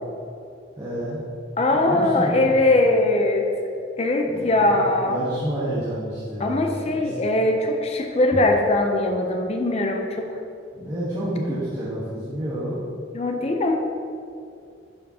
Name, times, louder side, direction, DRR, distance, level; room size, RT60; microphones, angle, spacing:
voice 1, 0.8-1.3 1.7-2.6 4.3-7.3 10.7-12.8, equal, 20° right, -11 dB, 1.2 m, -30 dB
voice 2, 1.6-3.5 4.0-5.2 6.4-10.4 13.1-13.7, left 2 dB, 30° left, 3 dB, 0.6 m, -21 dB
11.5 x 5.0 x 2.8 m, 2.5 s
head